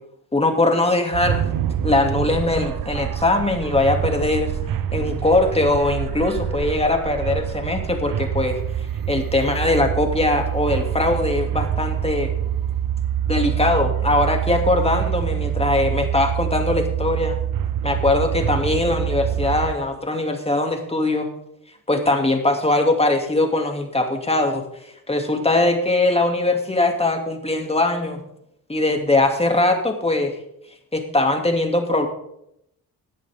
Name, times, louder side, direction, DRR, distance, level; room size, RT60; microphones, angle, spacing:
voice 1, 0.3-1.4 1.8-4.5 4.9-8.6 9.1-12.3 13.3-17.4 17.8-21.3 21.9-24.6 25.1-28.2 28.7-30.3 30.9-32.1, left 2 dB, 15° left, 4 dB, 2.6 m, -21 dB
sound 1, 1.1-19.7, right 10 dB, 80° right, 0.8 m, -25 dB
17.0 x 11.0 x 3.7 m, 0.77 s
cardioid pair, 85°, 34 cm